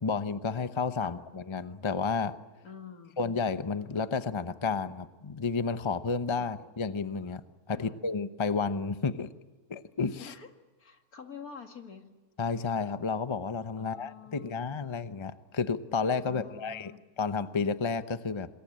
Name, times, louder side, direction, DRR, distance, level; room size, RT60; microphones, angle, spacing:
voice 1, 0.0-2.3 3.2-7.4 7.7-9.3 9.7-10.3 12.4-16.9 17.2-18.5, left 4 dB, 25° left, 11 dB, 0.7 m, -31 dB
voice 2, 2.6-3.2 6.4-6.6 7.7-8.0 10.2-10.5 10.8-12.1 13.8-14.7 16.2-17.0, left 6 dB, 70° left, 5 dB, 2.6 m, -47 dB
27.5 x 22.0 x 8.8 m, 1.2 s
omnidirectional pair, 1.6 m